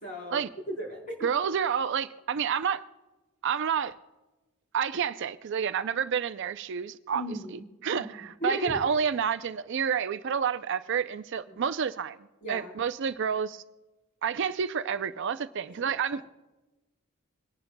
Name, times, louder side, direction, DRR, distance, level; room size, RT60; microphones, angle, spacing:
voice 1, 0.0-1.3 7.1-7.7 7.9-8.1 8.4-8.8 11.5-11.6 12.4-12.7 15.8-16.2, equal, 35° left, 3.8 m, -37 dB
voice 2, 1.2-2.8 3.4-3.9 4.7-7.2 7.8-12.2 12.5-13.6 14.2-16.2, right 7 dB, 55° right, 0.4 m, -29 dB
25.5 x 11.0 x 2.2 m
head